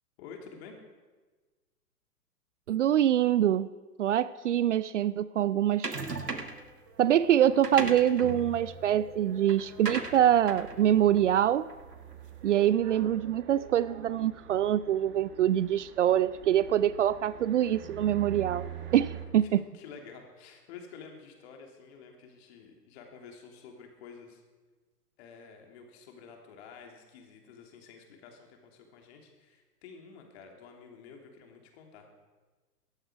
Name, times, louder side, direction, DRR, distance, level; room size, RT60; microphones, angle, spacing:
voice 1, 0.2-0.8 19.3-24.4 25.2-32.1, left 5 dB, 40° left, 3 dB, 3.1 m, -50 dB
voice 2, 2.7-3.7 4.0-6.0 7.0-11.7 12.4-19.6, right 11 dB, 50° right, 18 dB, 0.5 m, -25 dB
sound 1, 5.8-6.7 7.4-12.1, right 3 dB, 90° right, 1.5 m, -38 dB
sound 2, 6.1-19.3, right 8 dB, 25° right, 1.5 m, -46 dB
19.0 x 14.0 x 5.0 m, 1.3 s
figure-of-eight pair, 115°, 47 cm